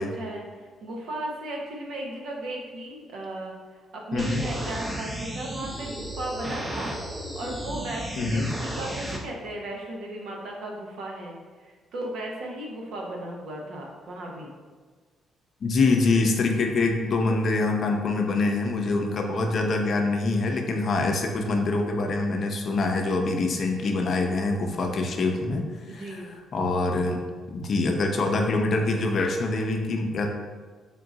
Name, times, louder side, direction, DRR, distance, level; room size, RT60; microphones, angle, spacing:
voice 1, 0.0-7.0 7.3-14.5 18.4-18.6 25.9-26.3, right 1 dB, 75° right, -1 dB, 0.8 m, -36 dB
voice 2, 4.1-4.4 8.2-8.5 15.6-25.7 25.9-26.2 26.5-27.2 27.5-30.3, left 3 dB, 55° left, 3 dB, 0.6 m, -25 dB
sound 1, 4.2-9.2, right 1 dB, 15° right, 0.6 m, -34 dB
3.7 x 2.5 x 3.9 m, 1.5 s
cardioid pair, 90°, 0 cm